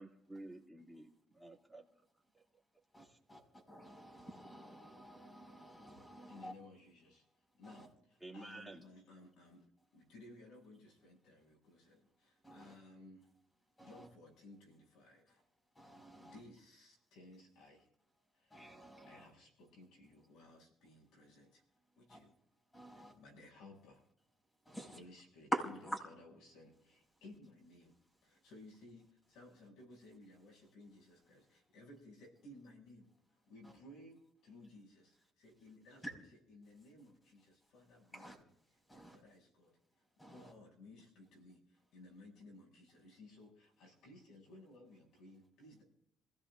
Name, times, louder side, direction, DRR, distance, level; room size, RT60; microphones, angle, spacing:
voice 1, 0.0-2.1 2.3-2.4 3.0-3.2 8.2-8.8, right 2 dB, ahead, -2 dB, 2.6 m, -52 dB
voice 2, 2.9-6.5 7.6-7.9 12.4-12.8 13.8-14.1 15.7-16.4 18.5-19.3 22.1-22.2 22.7-23.2 24.6-25.0 25.5-26.0 33.6-33.7 36.0-36.1 38.1-38.4 38.8-39.2 40.2-40.5, right 1 dB, 15° left, 1 dB, 5.3 m, -46 dB
voice 3, 6.3-7.2 7.6-7.9 8.3-9.7 9.9-13.3 13.8-15.4 16.2-17.9 18.4-18.5 19.0-21.6 22.0-22.3 23.0-24.0 24.7-25.5 26.0-27.9 28.2-33.1 33.5-36.2 36.5-38.3 38.9-39.8 40.3-45.8, left 2 dB, 80° left, 0 dB, 7.0 m, -58 dB
27.5 x 16.0 x 2.6 m, 0.74 s
cardioid pair, 105°, 0 cm